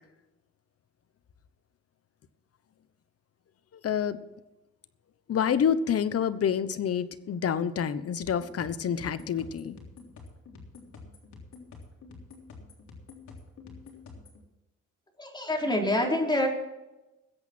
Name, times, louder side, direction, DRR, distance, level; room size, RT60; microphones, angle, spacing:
voice 1, 3.7-4.2 5.3-9.8, left 8 dB, 50° left, 13 dB, 1.1 m, -28 dB
sound 1, 8.2-14.4, left 4 dB, 70° left, 3.5 m, -48 dB
voice 2, 15.2-16.5, left 1 dB, 15° left, 1 dB, 4.0 m, -26 dB
20.5 x 8.3 x 4.5 m, 1.0 s
cardioid pair, 90°, 30 cm